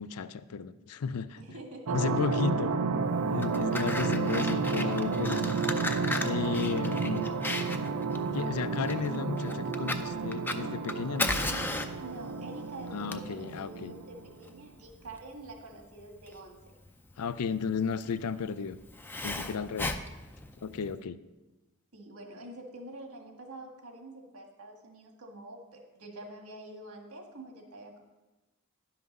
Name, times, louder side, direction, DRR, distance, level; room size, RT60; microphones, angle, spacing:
voice 1, 0.0-1.4 1.9-2.7 3.3-5.6 6.2-7.3 8.3-11.4 12.9-13.9 17.2-18.8 19.2-19.9 20.6-21.2, left 5 dB, 80° left, 14 dB, 0.4 m, -33 dB
voice 2, 1.4-2.1 6.5-6.8 12.0-16.6 19.3-19.5 21.9-28.0, right 1 dB, 70° right, 2 dB, 1.7 m, -46 dB
sound 1, 1.8-14.4, right 4 dB, 90° right, 0.7 m, -31 dB
Fire, 3.2-20.9, left 2 dB, 10° left, 0.4 m, -37 dB
11.0 x 5.9 x 5.3 m, 1.1 s
head